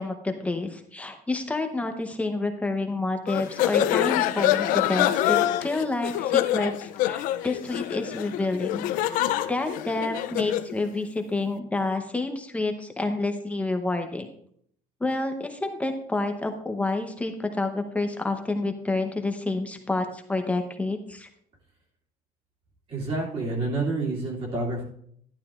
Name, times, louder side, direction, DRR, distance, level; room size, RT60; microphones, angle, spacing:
voice 1, 0.0-9.2 9.5-14.3 15.0-21.3, left 2 dB, 10° left, 5 dB, 0.8 m, -29 dB
sound 1, 3.3-10.7, left 13 dB, 70° left, 0.5 m, -25 dB
voice 2, 22.9-24.8, right 2 dB, 40° right, -3 dB, 2.7 m, -28 dB
11.5 x 10.5 x 2.4 m, 0.65 s
cardioid pair, 150°, 14 cm